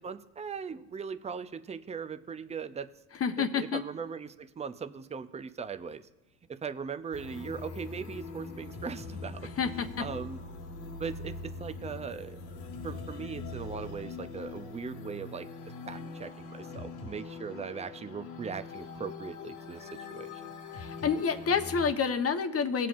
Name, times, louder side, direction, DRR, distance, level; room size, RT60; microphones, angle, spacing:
voice 1, 0.0-2.9 3.4-6.0 6.5-9.4 10.0-10.4 11.0-12.4 12.8-15.5 15.9-20.4, right 6 dB, 15° right, 10 dB, 0.6 m, -39 dB
voice 2, 3.2-3.8 9.6-10.0 20.7-22.9, left 6 dB, 30° left, 7 dB, 1.1 m, -28 dB
sound 1, 7.1-21.9, left 4 dB, 70° left, 1.8 m, -42 dB
19.0 x 7.5 x 2.5 m, 1.1 s
hypercardioid pair, 80°, 45 cm